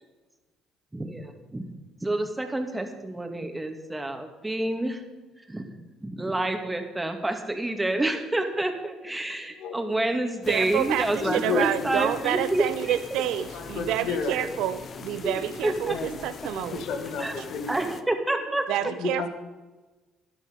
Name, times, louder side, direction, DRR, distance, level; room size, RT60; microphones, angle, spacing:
voice 1, 0.9-1.6 2.0-5.0 5.5-5.7 6.0-13.2 14.4-14.6 15.2-16.0 17.2-17.3 17.7-18.7, right 2 dB, 15° right, 5 dB, 2.1 m, -28 dB
voice 2, 9.5-10.2 11.2-12.0 12.3-12.4 13.5-14.4 15.9-16.2 16.5-17.8 19.0-19.3, left 5 dB, 70° left, 5 dB, 1.7 m, -32 dB
sound 1, 10.4-18.0, left 6 dB, 50° left, 0.9 m, -42 dB
voice 3, 10.5-16.8 18.7-19.3, right 12 dB, 75° right, 13 dB, 0.5 m, -28 dB
13.5 x 10.5 x 5.2 m, 1.2 s
hypercardioid pair, 65°, 0 cm